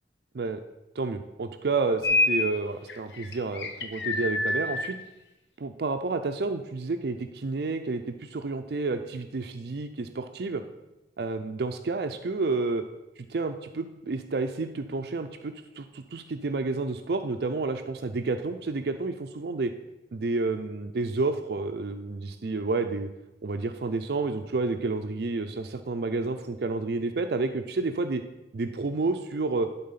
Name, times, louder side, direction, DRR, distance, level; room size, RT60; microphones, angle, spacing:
voice 1, 1.0-5.0 5.6-10.6 11.2-12.8 13.2-19.7 20.1-23.1 23.4-28.2 28.5-29.7, right 3 dB, 60° right, 6 dB, 0.5 m, -30 dB
sound 1, 2.0-2.5 2.9-4.9, left 2 dB, 75° left, 1.0 m, -26 dB
11.5 x 4.0 x 5.6 m, 0.96 s
head